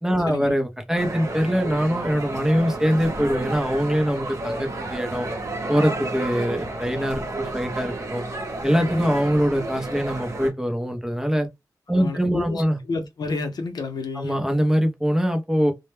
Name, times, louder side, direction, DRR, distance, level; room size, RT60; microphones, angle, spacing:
voice 1, 0.0-5.3 5.7-8.2 8.6-11.5 11.9-12.8 14.2-15.7, equal, 5° right, 0.6 m, -23 dB
sound 1, 1.0-10.5, right 2 dB, 50° right, 0.7 m, -31 dB
voice 2, 12.0-14.4, left 3 dB, 80° left, 0.6 m, -30 dB
2.1 x 2.1 x 3.1 m
wide cardioid pair, 135°, 7 cm